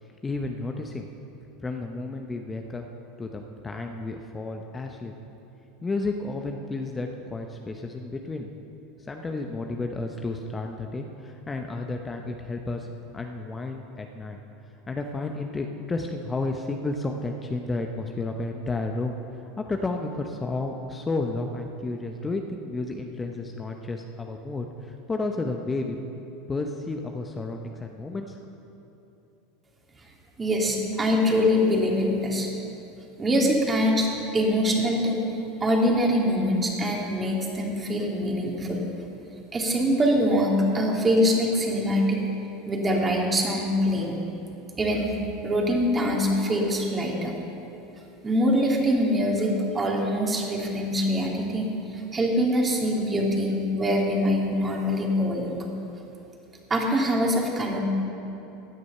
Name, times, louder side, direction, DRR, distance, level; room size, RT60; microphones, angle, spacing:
voice 1, 0.0-1.1 1.6-2.8 3.2-5.1 5.8-8.5 9.1-12.9 13.1-14.4 14.9-26.0 26.5-28.4, left 3 dB, 20° left, 3 dB, 0.9 m, -32 dB
voice 2, 30.4-32.5 33.2-34.1 34.3-38.8 39.5-42.2 42.7-44.2 44.8-45.1 45.4-47.4 48.2-55.6 56.7-57.8, equal, 25° right, -1 dB, 2.7 m, -24 dB
16.0 x 9.5 x 5.7 m, 2.9 s
hypercardioid pair, 85°, 0 cm